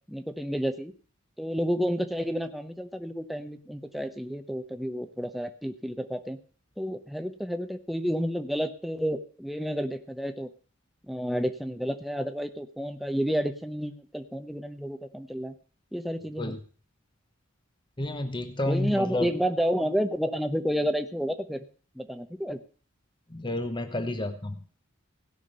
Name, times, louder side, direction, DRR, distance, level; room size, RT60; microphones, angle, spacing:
voice 1, 0.1-0.9 1.4-6.4 6.8-10.5 11.1-15.5 15.9-16.6 18.7-21.7 21.9-22.6, equal, ahead, 8 dB, 0.8 m, -30 dB
voice 2, 18.0-19.3 23.3-24.6, left 1 dB, 20° left, 8 dB, 1.0 m, -30 dB
17.0 x 6.0 x 6.7 m, 0.41 s
head